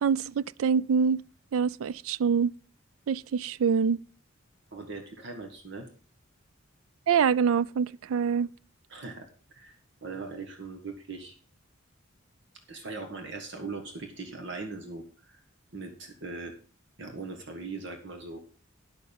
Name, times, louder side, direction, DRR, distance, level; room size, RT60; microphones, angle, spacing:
voice 1, 0.0-1.2 1.5-2.5 3.1-4.0 7.1-8.5, right 6 dB, 85° right, 0.4 m, -25 dB
voice 2, 4.7-5.9 8.9-9.7 10.0-11.3 12.7-15.4 15.7-16.5 17.0-18.4, right 3 dB, 60° right, 1.5 m, -40 dB
10.5 x 6.9 x 5.3 m
head